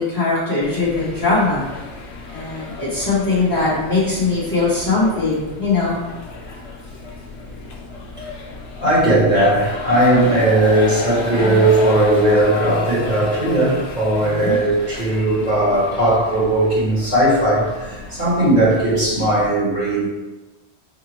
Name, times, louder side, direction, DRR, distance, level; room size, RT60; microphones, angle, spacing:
voice 1, 0.0-1.6 2.3-6.0 14.2-14.5, left 3 dB, 20° left, -9 dB, 1.2 m, -20 dB
sound 1, 0.6-19.5, left 4 dB, 90° left, 0.9 m, -32 dB
voice 2, 2.8-3.1 8.8-20.1, right 1 dB, 45° right, -8 dB, 1.3 m, -17 dB
4.8 x 2.3 x 2.9 m, 1.1 s
omnidirectional pair, 1.1 m